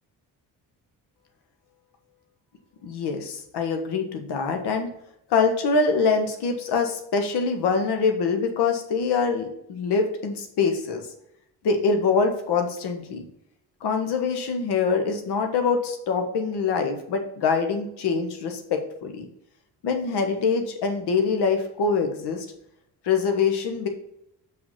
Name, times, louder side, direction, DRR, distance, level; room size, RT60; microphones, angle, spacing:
voice 1, 2.8-4.9 5.3-11.0 11.6-13.2 13.8-19.3 19.8-22.5 23.0-23.9, left 5 dB, 55° left, 5 dB, 1.3 m, -24 dB
6.2 x 5.8 x 4.1 m, 0.78 s
figure-of-eight pair, 40°, 49 cm